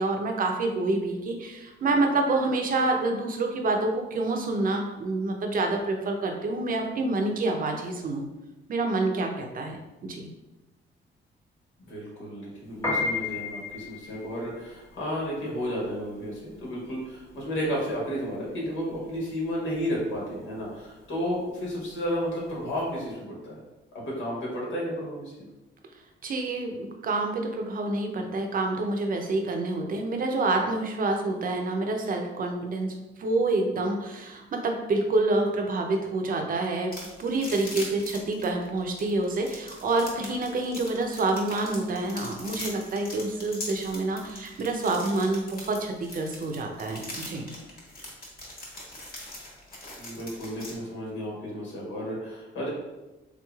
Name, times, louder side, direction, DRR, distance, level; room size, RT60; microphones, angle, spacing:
voice 1, 0.0-8.3 8.7-9.8 10.0-10.3 26.2-32.9 33.2-47.5, right 2 dB, 45° right, 3 dB, 0.6 m, -27 dB
voice 2, 11.9-23.6 24.1-25.3 50.0-52.7, equal, 75° left, -4 dB, 1.4 m, -32 dB
Piano, 12.7-23.1, left 3 dB, 15° left, 1.2 m, -35 dB
sound 1, 36.9-50.7, left 1 dB, 50° left, 1.3 m, -41 dB
3.6 x 3.1 x 2.3 m, 1.1 s
cardioid pair, 90°, 20 cm